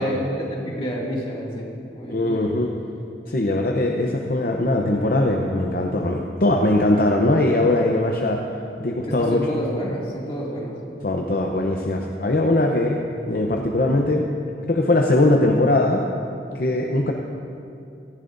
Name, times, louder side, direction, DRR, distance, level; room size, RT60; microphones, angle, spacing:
voice 1, 0.0-1.7 1.9-2.4 9.0-10.8, equal, 30° left, -4 dB, 2.2 m, -28 dB
voice 2, 2.1-2.7 3.3-8.4 8.8-9.5 11.0-13.0 13.2-14.3 14.6-16.0 16.5-17.1, left 2 dB, 50° left, 1 dB, 0.7 m, -20 dB
17.5 x 14.5 x 2.6 m, 2.6 s
head